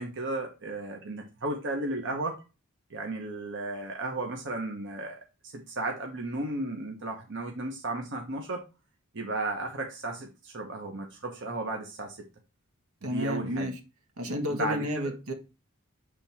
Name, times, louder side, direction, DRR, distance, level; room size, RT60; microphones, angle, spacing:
voice 1, 0.0-2.4 2.9-8.6 9.1-12.2 13.0-13.7 14.5-15.1, right 2 dB, 60° right, 1.2 m, -34 dB
voice 2, 13.0-13.8 14.2-15.3, left 1 dB, 80° right, 1.5 m, -31 dB
7.5 x 3.6 x 4.3 m
head